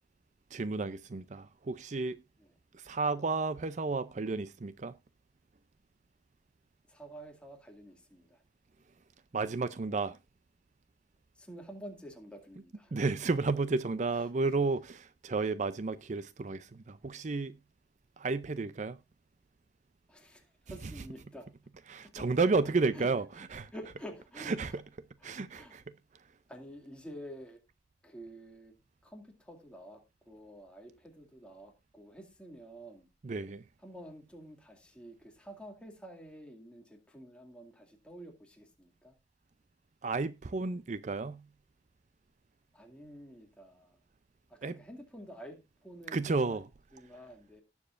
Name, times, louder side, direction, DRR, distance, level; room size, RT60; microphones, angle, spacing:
voice 1, 0.5-2.2 2.7-4.9 9.3-10.2 12.9-17.6 18.2-19.0 21.9-23.7 24.5-24.8 25.2-25.8 26.1-26.2 33.2-33.6 40.0-41.5 44.6-44.8 46.1-46.7, right 3 dB, 40° right, 0.5 m, -32 dB
voice 2, 6.9-8.4 11.4-12.9 20.1-21.5 22.1-22.4 22.9-23.1 23.5-24.8 25.2-25.8 26.5-27.6 28.0-28.7 29.0-33.1 33.8-39.2 42.7-44.0 44.5-46.6 46.9-47.6, equal, 5° left, 2.2 m, -49 dB
18.5 x 7.1 x 2.5 m
head